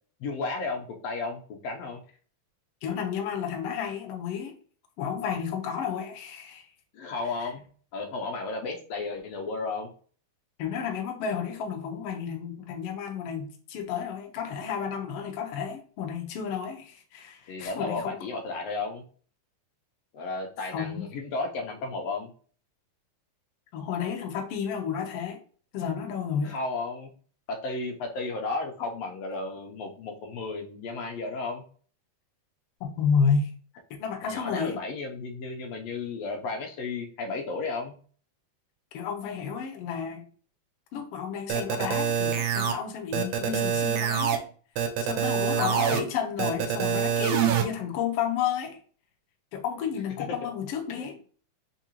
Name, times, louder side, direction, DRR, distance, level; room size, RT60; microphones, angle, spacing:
voice 1, 0.2-2.0 6.9-7.6 7.9-9.9 17.5-19.0 20.1-22.3 26.4-27.1 27.5-31.6 34.2-37.9 45.5-46.0 50.9-51.1, left 3 dB, 70° left, 2 dB, 1.6 m, -33 dB
voice 2, 2.8-4.6 5.0-6.7 7.4-7.5 10.6-18.2 20.6-21.1 23.7-25.4 25.7-26.5 32.8-33.5 33.9-34.8 38.9-40.2 40.9-44.5 45.0-48.8 49.5-51.2, left 7 dB, 90° left, 3 dB, 1.3 m, -31 dB
sound 1, 41.5-42.7 43.1-44.4 44.8-46.0 46.4-47.6, right 8 dB, 85° right, 1.4 m, -25 dB
4.5 x 3.7 x 2.9 m, 0.42 s
omnidirectional pair, 3.6 m